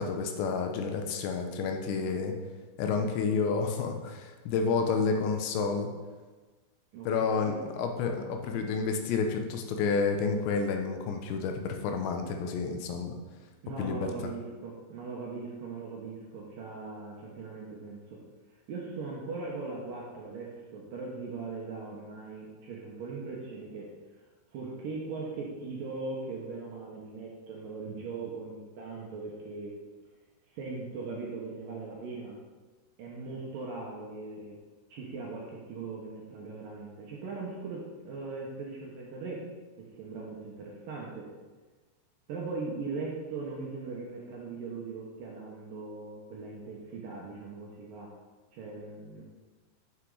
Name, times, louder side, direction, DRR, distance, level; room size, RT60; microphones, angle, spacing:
voice 1, 0.0-2.3 2.8-5.9 7.1-13.2 13.8-14.1, left 5 dB, 80° left, 4 dB, 3.1 m, -30 dB
voice 2, 6.9-7.6 13.6-18.2 18.7-23.9 24.5-29.7 30.5-32.4 33.0-34.6 34.9-39.5 39.8-41.3 42.3-48.1 48.5-49.2, right 4 dB, 70° right, -3 dB, 2.2 m, -39 dB
8.2 x 5.9 x 4.8 m, 1.3 s
omnidirectional pair, 5.1 m